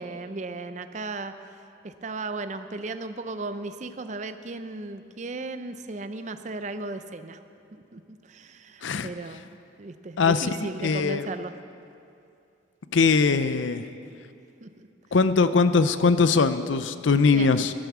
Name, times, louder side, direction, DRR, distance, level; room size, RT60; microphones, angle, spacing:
voice 1, 0.0-1.3 1.8-7.4 7.9-11.5 14.6-14.9 17.3-17.6, right 3 dB, 40° right, 10 dB, 0.5 m, -36 dB
voice 2, 10.8-11.3 12.9-13.8 15.1-17.7, left 4 dB, 80° left, 12 dB, 0.5 m, -21 dB
12.0 x 11.5 x 7.2 m, 2.6 s
head